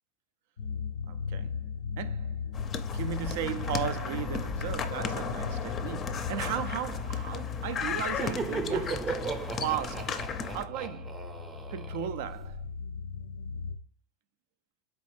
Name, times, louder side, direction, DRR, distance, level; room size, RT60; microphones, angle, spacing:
sound 1, 0.6-13.8, left 6 dB, 90° left, 0.4 m, -38 dB
voice 1, 1.1-1.6 2.0-2.4 2.9-9.2 9.6-11.2 11.7-12.6, right 10 dB, 70° right, 0.3 m, -36 dB
sound 2, 2.5-10.7, left 6 dB, 35° left, 0.4 m, -35 dB
Laughter, 7.9-12.6, right 4 dB, 25° right, 0.6 m, -36 dB
4.1 x 3.0 x 3.2 m
hypercardioid pair, 105°, 0 cm